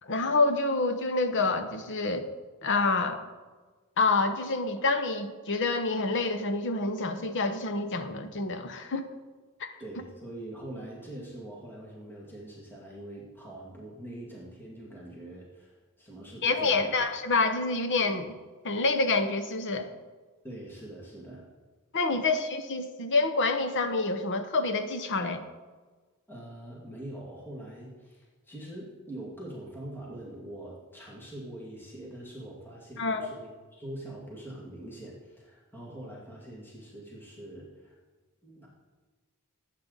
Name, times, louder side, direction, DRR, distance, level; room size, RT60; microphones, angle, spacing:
voice 1, 0.0-2.3 2.6-3.2 4.0-9.1 9.6-9.7 16.4-18.4 18.6-19.9 21.9-25.4 33.0-33.3, left 3 dB, 55° left, 8 dB, 1.0 m, -27 dB
voice 2, 9.8-17.0 20.4-21.5 26.3-38.0 38.4-38.7, right 1 dB, 10° left, -4 dB, 2.1 m, -43 dB
18.5 x 8.8 x 4.0 m, 1.4 s
head